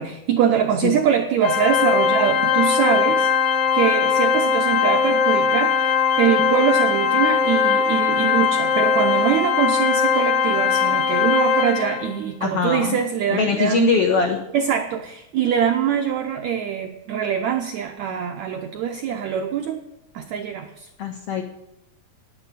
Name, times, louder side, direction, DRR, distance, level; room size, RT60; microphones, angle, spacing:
voice 1, 0.0-14.0 14.5-19.8 20.1-20.9, right 8 dB, 85° right, 6 dB, 1.6 m, -23 dB
Organ, 1.4-12.2, left 6 dB, 65° left, 2.3 m, -20 dB
voice 2, 12.4-13.0 13.3-14.4 21.0-21.4, left 6 dB, 90° left, 4 dB, 1.3 m, -22 dB
9.6 x 8.5 x 8.2 m, 0.84 s
omnidirectional pair, 4.2 m